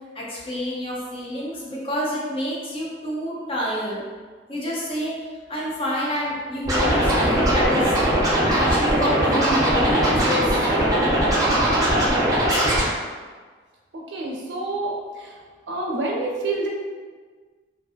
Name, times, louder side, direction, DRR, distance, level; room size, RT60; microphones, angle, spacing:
voice 1, 0.1-4.0 4.5-5.1 5.5-10.6, left 1 dB, 30° left, -5 dB, 0.6 m, -28 dB
Scratching (performance technique), 6.6-12.8, right 1 dB, 20° right, 0.6 m, -20 dB
voice 2, 13.9-15.3 15.7-16.7, right 2 dB, 80° right, -1 dB, 0.5 m, -28 dB
2.5 x 2.5 x 2.4 m, 1.5 s
head